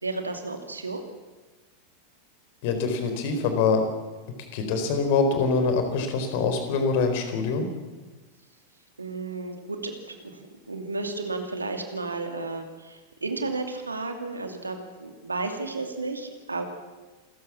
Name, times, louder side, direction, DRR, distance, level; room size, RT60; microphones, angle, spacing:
voice 1, 0.0-1.0 9.0-16.7, right 3 dB, 80° right, 5 dB, 2.7 m, -33 dB
voice 2, 2.6-3.8 4.5-7.7, left 4 dB, 50° left, 7 dB, 4.2 m, -24 dB
27.5 x 14.5 x 7.3 m, 1.3 s
figure-of-eight pair, 90°, 0 cm